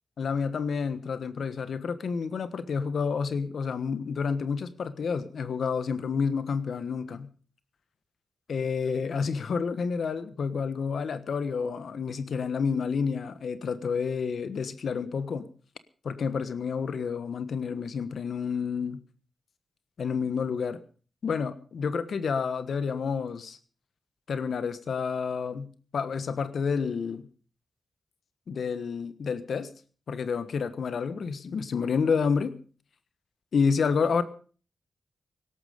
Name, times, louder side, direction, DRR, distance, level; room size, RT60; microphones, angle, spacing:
voice 1, 0.2-7.3 8.5-15.5 16.0-19.0 20.0-20.8 21.2-23.6 24.3-27.2 28.5-29.7 30.1-32.6 33.5-34.2, left 5 dB, 75° left, 13 dB, 1.3 m, -29 dB
17.5 x 12.5 x 5.3 m, 0.40 s
supercardioid pair, 40°, 0 cm